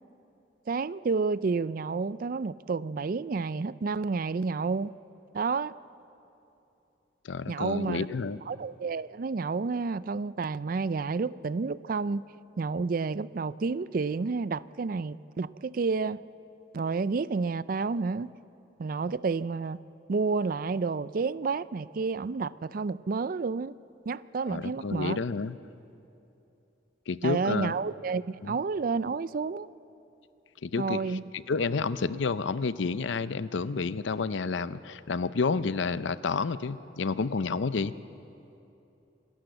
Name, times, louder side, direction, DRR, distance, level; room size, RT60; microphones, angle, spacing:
voice 1, 0.7-4.9 5.3-5.7 7.5-8.1 8.5-12.2 12.6-16.2 16.7-18.3 18.8-19.8 20.1-23.7 24.1-25.2 27.2-29.7 30.8-31.2, right 4 dB, 50° right, 17 dB, 0.4 m, -30 dB
voice 2, 7.2-8.4 24.5-25.6 27.1-27.7 28.4-28.6 30.6-31.0 31.3-37.9, left 4 dB, 80° left, 15 dB, 0.6 m, -30 dB
26.5 x 13.0 x 7.9 m, 2.9 s
head